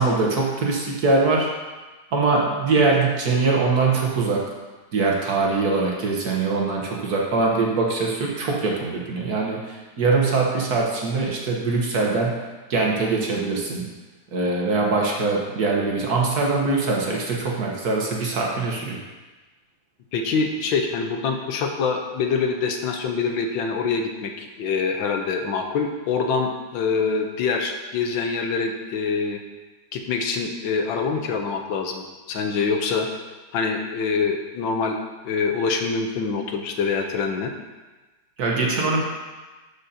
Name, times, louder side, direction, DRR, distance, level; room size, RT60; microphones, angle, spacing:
voice 1, 0.0-1.5 2.1-4.4 4.9-12.4 12.7-13.9 14.3-19.0 38.4-39.0, right 3 dB, 55° right, -2 dB, 1.4 m, -22 dB
voice 2, 20.1-29.4 29.9-33.1 33.5-37.5, left 5 dB, 75° left, 4 dB, 1.5 m, -25 dB
12.0 x 5.2 x 2.8 m, 1.2 s
omnidirectional pair, 2.1 m